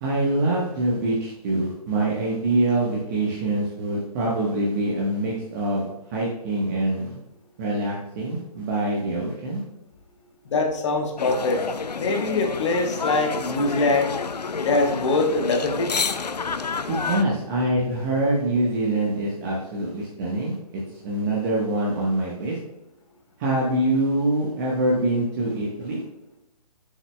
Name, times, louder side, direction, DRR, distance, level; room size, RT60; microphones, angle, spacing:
voice 1, 0.0-7.1 7.6-9.6 16.9-20.6 21.0-22.6 23.4-26.0, right 1 dB, 30° right, -3 dB, 1.2 m, -24 dB
voice 2, 10.4-11.6 11.9-14.2 14.6-15.9, left 3 dB, 45° left, 2 dB, 1.2 m, -23 dB
sound 1, 11.2-17.2, left 5 dB, 85° left, 0.5 m, -29 dB
7.1 x 7.0 x 2.3 m, 0.91 s
figure-of-eight pair, 135°, 20 cm